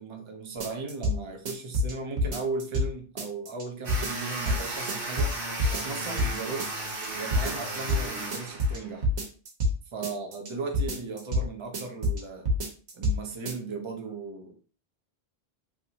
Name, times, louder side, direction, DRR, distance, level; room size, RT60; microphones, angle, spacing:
voice 1, 0.0-5.4 5.7-6.7 7.1-9.1 9.9-12.5 12.9-14.6, right 4 dB, 35° right, 3 dB, 0.5 m, -36 dB
sound 1, 0.6-1.2 1.5-2.9 3.2-3.6 3.9-4.6 4.9-5.3 5.6-6.3 6.6-7.1 7.3-8.0 8.3-9.7 10.0-10.5 10.7-11.5 11.7-12.2 12.5-13.2 13.5-13.6, left 1 dB, 75° right, 1.1 m, -27 dB
sound 2, 3.8-9.0, right 2 dB, 60° right, 1.1 m, -35 dB
3.2 x 2.5 x 2.8 m, 0.39 s
omnidirectional pair, 1.1 m